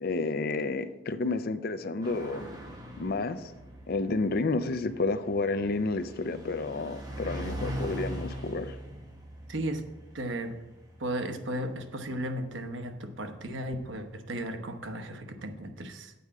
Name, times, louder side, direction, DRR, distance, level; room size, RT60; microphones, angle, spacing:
voice 1, 0.0-2.5 3.0-3.5 3.9-8.8, left 3 dB, 55° left, 11 dB, 0.5 m, -30 dB
sound 1, 2.0-13.0, right 1 dB, 20° right, 1.4 m, -41 dB
voice 2, 9.5-9.8 10.1-10.5 11.0-16.1, right 1 dB, 85° right, 6 dB, 1.0 m, -35 dB
8.3 x 4.7 x 7.3 m, 1.0 s
head